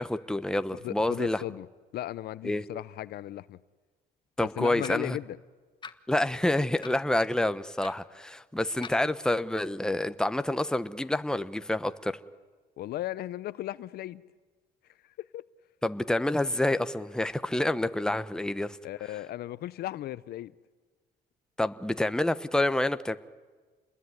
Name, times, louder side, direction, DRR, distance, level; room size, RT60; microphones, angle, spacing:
voice 1, 0.0-1.4 2.4-2.6 4.4-5.2 6.1-12.2 15.8-18.8 21.6-23.2, left 1 dB, 5° left, 1.1 m, -28 dB
voice 2, 0.8-1.7 1.9-3.6 4.4-5.4 12.8-14.2 15.2-15.4 18.8-20.5, left 14 dB, 65° left, 0.7 m, -36 dB
sound 1, 4.8-5.1 5.8-6.0 6.8-7.1 7.8-8.0 8.8-9.0, left 5 dB, 25° left, 1.3 m, -43 dB
28.5 x 21.0 x 9.8 m
cardioid pair, 110°, 17 cm